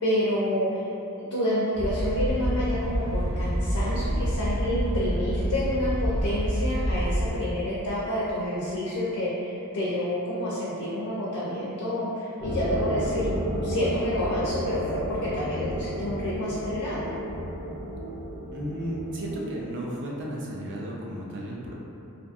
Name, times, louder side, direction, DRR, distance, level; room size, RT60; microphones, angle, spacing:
voice 1, 0.0-13.3 13.6-17.1, equal, 75° left, -7 dB, 0.4 m, -28 dB
sound 1, 1.7-7.3, equal, 75° right, 0.9 m, -27 dB
sound 2, 12.4-19.3, equal, 5° left, 0.4 m, -32 dB
voice 2, 18.5-21.7, right 1 dB, 55° right, -3 dB, 0.5 m, -33 dB
2.6 x 2.5 x 2.4 m, 2.9 s
head